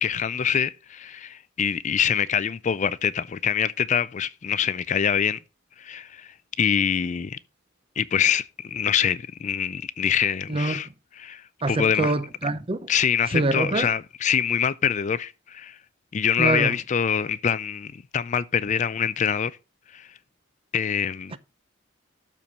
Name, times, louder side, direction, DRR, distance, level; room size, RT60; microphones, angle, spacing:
voice 1, 0.0-5.4 5.8-7.4 8.0-10.9 11.2-12.2 12.9-15.8 16.1-19.6 19.9-20.1 20.7-21.3, left 8 dB, 35° left, 0.4 m, -25 dB
voice 2, 10.5-10.8 11.6-12.8 13.3-13.9 16.4-16.8 21.3-21.4, right 2 dB, 25° right, 0.6 m, -25 dB
12.5 x 4.5 x 5.4 m
head